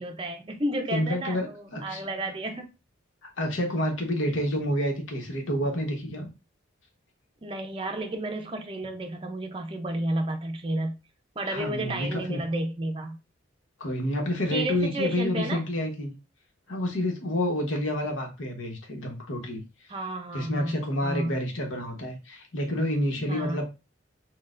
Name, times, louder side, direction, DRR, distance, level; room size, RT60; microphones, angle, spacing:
voice 1, 0.0-2.7 7.4-11.0 11.4-13.2 14.5-15.6 19.9-21.4 23.3-23.6, right 1 dB, 25° right, 0.5 m, -32 dB
voice 2, 0.9-2.0 3.4-6.3 11.5-12.4 13.8-16.1 16.7-19.6 20.3-23.6, left 1 dB, 80° left, 1.1 m, -29 dB
6.3 x 2.3 x 2.5 m
head